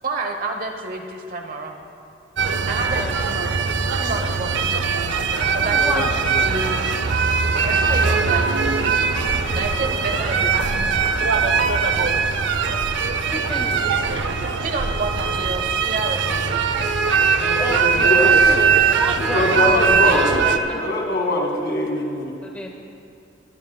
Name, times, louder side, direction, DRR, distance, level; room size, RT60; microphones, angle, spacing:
voice 1, 0.0-1.8 2.7-3.5 3.9-4.7 5.5-6.1 6.4-6.9 7.6-8.5 9.5-11.1 14.6-16.6, right 2 dB, 50° right, 4 dB, 1.0 m, -29 dB
sound 1, 2.4-20.6, right 5 dB, 70° right, 0.6 m, -20 dB
voice 2, 5.7-6.0 13.3-13.8 14.2-14.3 16.8-16.9 17.6-18.7 19.0-19.7 20.0-20.8 22.4-22.8, left 1 dB, 10° left, 0 dB, 0.7 m, -30 dB
voice 3, 17.4-18.5 19.2-20.5 20.8-22.3, left 1 dB, 60° left, -1 dB, 2.2 m, -22 dB
23.0 x 12.0 x 2.3 m, 2.6 s
head